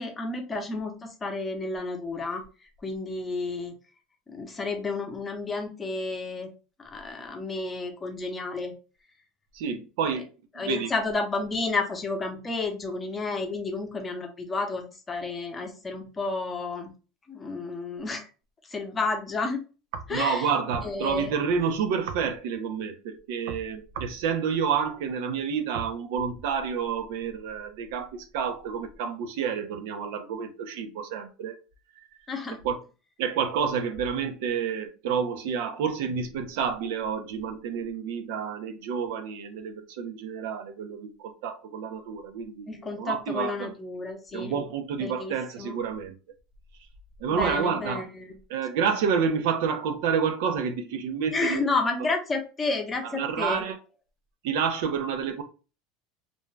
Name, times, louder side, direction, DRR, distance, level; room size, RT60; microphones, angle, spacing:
voice 1, 0.0-2.4 2.8-3.7 4.3-6.5 6.8-8.7 10.6-16.9 17.3-18.3 18.7-19.6 20.1-20.5 20.8-21.3 32.3-32.6 42.7-44.6 45.0-45.8 47.3-48.4 51.3-53.6, left 3 dB, 20° left, 0.7 m, -31 dB
voice 2, 9.5-10.3 10.5-10.9 20.1-31.6 32.0-32.1 32.6-32.8 33.2-43.7 44.3-46.2 47.2-48.0 48.5-51.7 53.0-53.8 54.4-55.4, right 6 dB, 75° right, 0.6 m, -29 dB
2.6 x 2.2 x 3.2 m
supercardioid pair, 130°, 0 cm